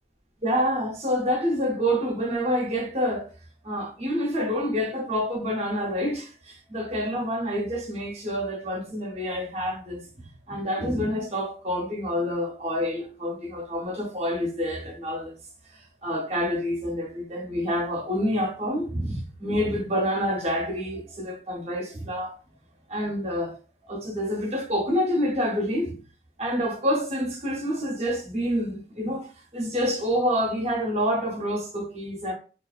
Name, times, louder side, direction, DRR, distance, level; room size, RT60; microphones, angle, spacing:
voice 1, 0.4-3.3 3.6-15.3 16.0-22.3 22.9-23.5 23.8-26.0 26.4-32.3, equal, 35° right, 0.7 m, -27 dB
2.5 x 2.4 x 2.3 m
head